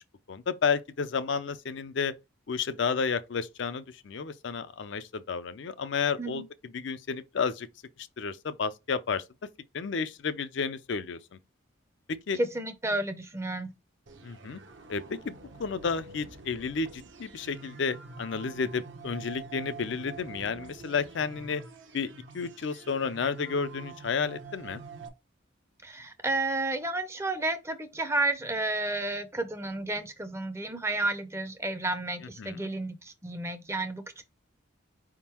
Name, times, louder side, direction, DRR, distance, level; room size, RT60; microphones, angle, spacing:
voice 1, 0.3-2.1 2.5-7.7 8.0-9.2 9.7-11.4 12.3-12.4 14.2-14.6 14.9-21.6 21.9-24.8 32.4-32.7, left 5 dB, 65° left, 0.5 m, -32 dB
voice 2, 12.3-13.7 25.8-34.2, right 2 dB, 15° right, 0.5 m, -31 dB
sound 1, 14.1-25.1, right 4 dB, 65° right, 0.8 m, -46 dB
5.0 x 3.7 x 2.9 m
head